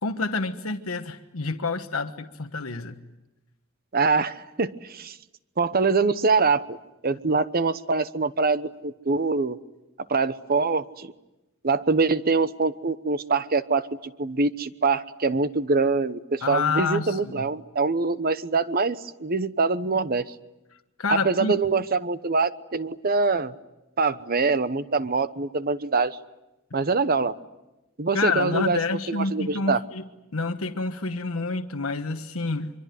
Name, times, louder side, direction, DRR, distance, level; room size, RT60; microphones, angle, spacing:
voice 1, 0.0-3.0 16.4-17.4 21.0-21.5 28.1-32.7, left 3 dB, 90° left, 7 dB, 1.3 m, -28 dB
voice 2, 3.9-5.2 5.6-6.8 7.0-9.6 10.1-11.1 11.6-20.2 21.1-23.5 24.0-26.2 26.7-27.3 28.0-28.8 29.1-29.8, right 4 dB, 45° right, 14 dB, 1.0 m, -24 dB
25.0 x 24.0 x 9.4 m, 0.99 s
head